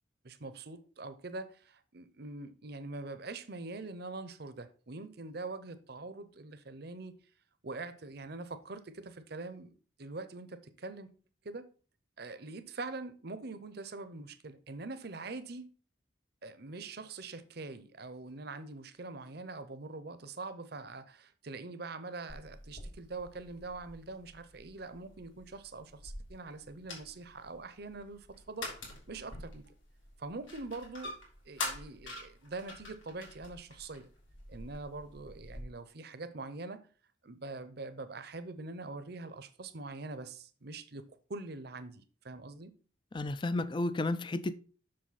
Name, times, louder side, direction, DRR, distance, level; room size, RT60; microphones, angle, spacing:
voice 1, 0.2-7.1 7.6-11.1 11.4-11.7 12.2-15.7 16.4-28.7 29.1-29.7 30.2-31.2 31.4-34.1 34.5-36.8 37.2-42.7, right 3 dB, 55° right, 0.8 m, -44 dB
sound 1, 22.3-35.6, left 2 dB, 75° left, 3.3 m, -46 dB
voice 2, 43.1-44.5, left 2 dB, 25° left, 0.4 m, -32 dB
7.7 x 6.3 x 4.2 m
head